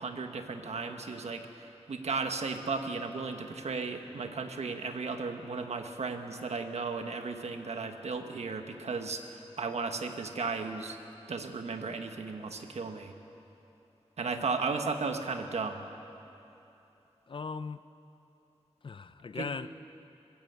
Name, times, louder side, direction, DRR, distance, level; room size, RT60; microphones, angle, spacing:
voice 1, 0.0-11.0 11.3-13.1 14.2-15.9 19.4-19.5, right 4 dB, 80° right, 6 dB, 1.4 m, -35 dB
voice 2, 17.3-17.8 18.8-19.7, left 4 dB, 50° left, 13 dB, 0.5 m, -38 dB
20.5 x 16.0 x 8.1 m, 3.0 s
wide cardioid pair, 120°, 11 cm